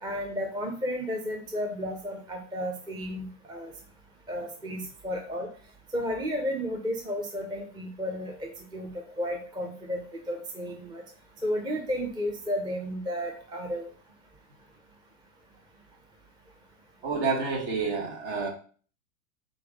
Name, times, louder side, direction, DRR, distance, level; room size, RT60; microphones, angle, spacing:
voice 1, 0.0-3.7 4.3-5.5 5.9-8.9 9.2-11.0 11.4-13.9, equal, 10° right, 2 dB, 0.6 m, -33 dB
voice 2, 17.0-18.5, right 4 dB, 55° right, 2 dB, 1.5 m, -29 dB
3.9 x 3.4 x 3.6 m, 0.42 s
hypercardioid pair, 100°, 42 cm